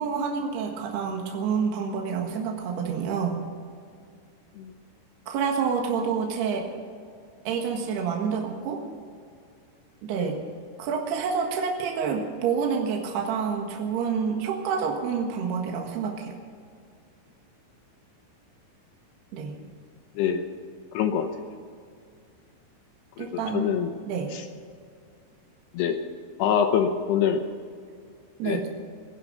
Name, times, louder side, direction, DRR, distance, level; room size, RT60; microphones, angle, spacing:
voice 1, 0.0-3.4 5.3-6.7 7.4-8.8 10.0-10.4 10.8-16.3 19.3-19.5 23.2-23.7 24.1-24.3 28.4-28.7, right 6 dB, 65° right, 1 dB, 3.3 m, -28 dB
voice 2, 20.9-21.3 23.2-23.9 24.3-24.4 25.7-26.0 26.4-27.4 28.4-28.6, left 8 dB, 75° left, 6 dB, 2.5 m, -25 dB
19.5 x 10.5 x 6.7 m, 2.2 s
omnidirectional pair, 5.7 m